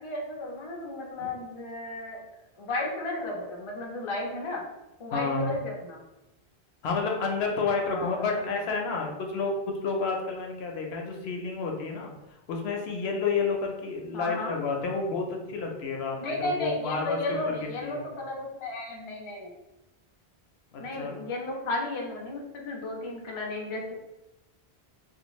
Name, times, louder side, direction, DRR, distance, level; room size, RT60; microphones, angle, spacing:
voice 1, 0.0-2.2 2.6-4.6 5.0-6.0 7.8-8.6 14.1-14.5 16.2-19.5 20.8-23.9, left 2 dB, 40° left, -1 dB, 0.4 m, -34 dB
voice 2, 5.1-5.5 6.8-12.1 12.5-17.2 17.5-18.0 20.7-21.1, left 4 dB, 80° left, 1 dB, 0.8 m, -30 dB
2.5 x 2.4 x 3.0 m, 0.95 s
omnidirectional pair, 1.0 m